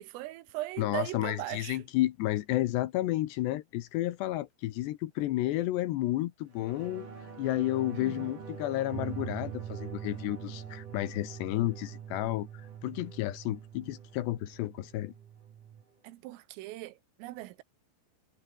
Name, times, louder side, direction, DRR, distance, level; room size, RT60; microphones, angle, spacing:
voice 1, 0.0-1.9 7.9-8.4 16.0-17.6, right 17 dB, 80° right, 3.8 m, -39 dB
voice 2, 0.8-7.1 7.4-12.5 12.8-15.1, left 16 dB, 75° left, 2.7 m, -31 dB
sound 1, 6.5-15.5 15.9-16.0, right 4 dB, 40° right, 6.6 m, -48 dB
sound 2, 8.9-15.8, right 10 dB, 60° right, 2.0 m, -44 dB
omnidirectional pair, 6.0 m